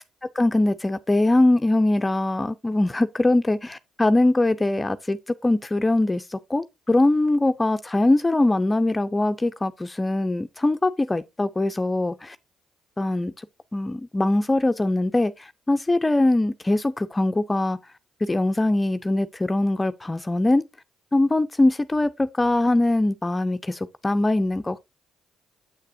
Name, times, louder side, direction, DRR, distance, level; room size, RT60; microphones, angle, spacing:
voice 1, 0.4-12.4 13.0-13.5 13.7-17.8 18.2-20.6 21.1-24.8, left 2 dB, 20° left, 0.4 m, -22 dB
7.6 x 6.5 x 2.5 m
hypercardioid pair, 50°, 0 cm